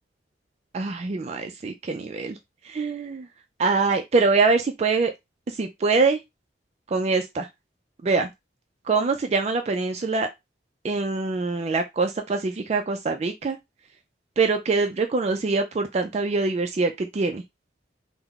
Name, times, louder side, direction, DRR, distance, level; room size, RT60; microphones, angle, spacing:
voice 1, 0.7-2.4 2.6-3.3 3.6-5.1 5.5-6.2 6.9-7.5 8.0-8.3 8.9-10.3 10.8-13.6 14.4-17.4, right 4 dB, 35° right, 0.3 m, -24 dB
3.6 x 2.1 x 3.4 m
head